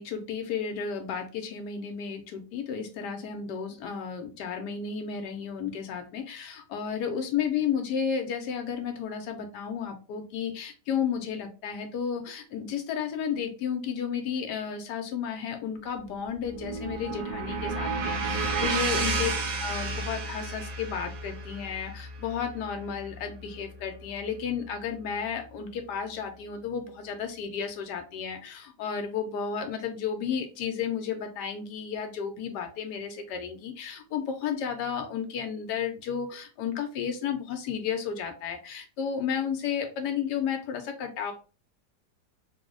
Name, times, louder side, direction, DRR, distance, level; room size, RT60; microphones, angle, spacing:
voice 1, 0.0-19.3 19.6-41.3, left 7 dB, 85° left, 5 dB, 1.3 m, -33 dB
sound 1, 16.0-24.2, right 3 dB, 65° right, 1.1 m, -32 dB
3.1 x 2.0 x 3.6 m, 0.33 s
omnidirectional pair, 1.8 m